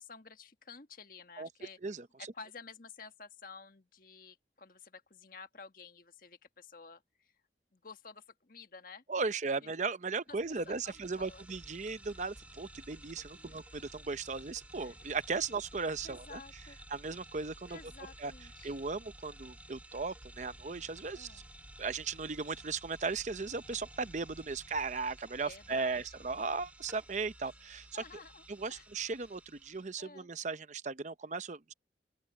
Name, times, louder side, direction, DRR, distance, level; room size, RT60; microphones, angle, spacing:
voice 1, 0.0-1.8 2.2-7.3 7.7-9.0 9.6-9.7 10.5-11.4 13.3-13.6 14.8-15.0 15.4-15.5 16.0-16.8 17.7-18.8 21.1-21.4 25.4-26.2 27.9-28.9 30.0-30.3, left 5 dB, 50° left, 1.5 m, -52 dB
voice 2, 9.1-16.4 16.9-17.8 18.2-18.3 18.6-21.4 21.8-28.0 28.5-31.7, right 4 dB, 45° right, 0.7 m, -37 dB
sound 1, 10.3-30.0, right 1 dB, 10° right, 1.8 m, -54 dB
open air
head